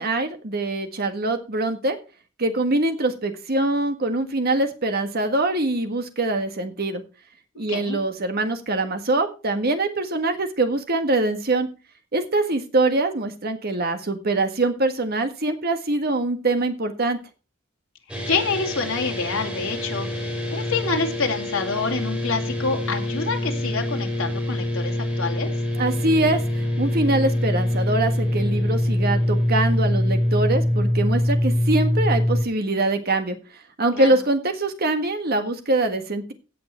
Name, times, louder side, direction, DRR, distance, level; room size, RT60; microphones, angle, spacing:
voice 1, 0.0-2.0 2.4-7.0 7.5-11.7 12.1-17.2 25.8-33.4 33.8-36.3, right 2 dB, 50° right, 7 dB, 1.6 m, -23 dB
voice 2, 7.6-8.0 18.2-25.5 33.9-34.1, left 4 dB, 85° left, 2 dB, 2.5 m, -27 dB
sound 1, 18.1-32.4, left 1 dB, 5° right, 2.8 m, -24 dB
16.5 x 5.9 x 4.3 m, 0.33 s
head